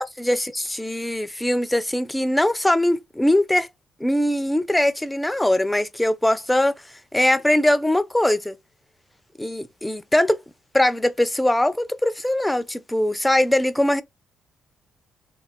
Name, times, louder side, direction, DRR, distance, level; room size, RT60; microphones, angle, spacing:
voice 1, 0.0-3.7 4.0-6.7 7.1-8.6 9.4-10.4 10.7-14.0, left 1 dB, 10° left, 0.4 m, -21 dB
2.7 x 2.4 x 2.5 m
cardioid pair, 90°, 0 cm